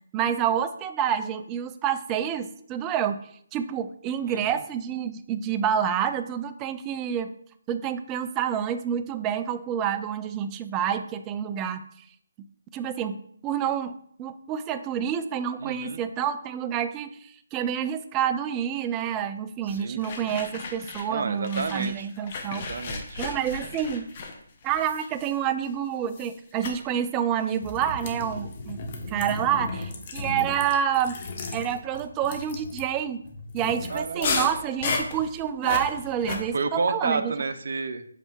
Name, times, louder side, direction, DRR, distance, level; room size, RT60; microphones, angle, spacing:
voice 1, 0.1-3.2 3.5-7.3 7.7-11.9 12.7-13.9 14.2-22.7 23.2-24.1 24.6-28.8 29.1-31.2 31.5-33.2 33.5-37.3, right 9 dB, 15° right, 10 dB, 0.4 m, -28 dB
voice 2, 4.3-4.6 15.6-16.0 19.7-20.0 21.1-22.1 22.5-23.2 33.9-34.5 36.5-38.0, right 4 dB, 60° right, 10 dB, 0.7 m, -30 dB
sound 1, 19.7-21.2 21.4-25.7 26.1-26.4 26.6-26.8 27.5-36.4, left 4 dB, 35° left, 1.2 m, -34 dB
8.0 x 3.4 x 4.5 m, 0.65 s
hypercardioid pair, 160°, 0 cm